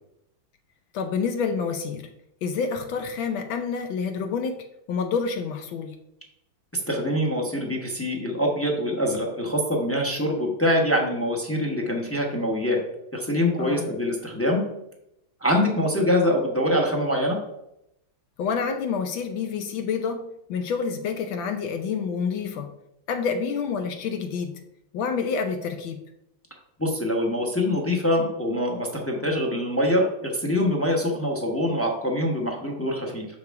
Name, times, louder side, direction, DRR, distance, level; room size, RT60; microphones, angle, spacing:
voice 1, 0.9-2.1 2.4-6.0 13.5-13.9 18.4-22.7 23.1-24.6 24.9-26.0, left 5 dB, 75° left, 7 dB, 1.3 m, -28 dB
voice 2, 6.9-12.8 13.1-14.6 15.4-17.4 26.8-33.3, left 1 dB, 10° left, 0 dB, 0.6 m, -24 dB
6.8 x 4.9 x 4.6 m, 0.82 s
omnidirectional pair, 2.3 m